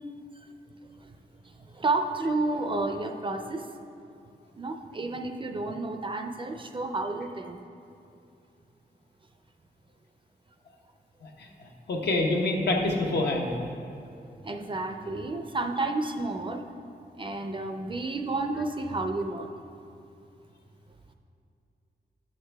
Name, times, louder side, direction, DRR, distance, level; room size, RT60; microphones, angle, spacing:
voice 1, 1.6-3.7 4.6-7.6 14.4-16.7 17.2-19.5, right 2 dB, 30° right, 5 dB, 0.5 m, -31 dB
voice 2, 11.9-13.5, left 2 dB, 75° left, 0 dB, 1.1 m, -25 dB
11.0 x 6.6 x 3.4 m, 2.6 s
wide cardioid pair, 125°, 17 cm